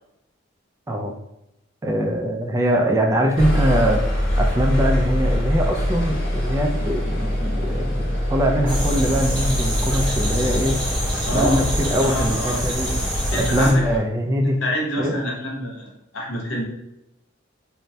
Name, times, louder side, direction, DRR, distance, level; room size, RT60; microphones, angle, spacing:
voice 1, 1.8-10.8 11.3-12.9 13.5-14.6 15.0-15.1, equal, 15° right, 2 dB, 0.3 m, -22 dB
sound 1, 3.4-14.0, equal, 50° left, 0.7 m, -24 dB
sound 2, 8.7-13.7, equal, 5° left, 0.8 m, -25 dB
voice 2, 11.3-11.6 12.0-12.6 13.3-13.8 14.4-16.6, equal, 85° left, -1 dB, 0.8 m, -26 dB
3.2 x 2.1 x 2.6 m, 0.85 s
head